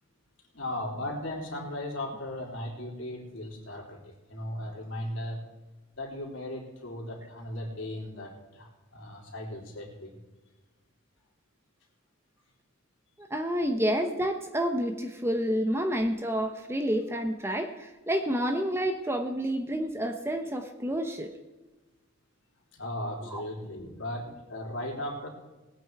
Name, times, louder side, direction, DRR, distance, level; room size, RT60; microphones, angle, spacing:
voice 1, 0.5-5.4 5.9-10.1 22.7-25.3, left 1 dB, 60° left, -1 dB, 3.6 m, -37 dB
voice 2, 13.2-21.3 23.3-23.4, equal, 10° right, 6 dB, 0.8 m, -29 dB
19.5 x 8.9 x 4.7 m, 1.1 s
head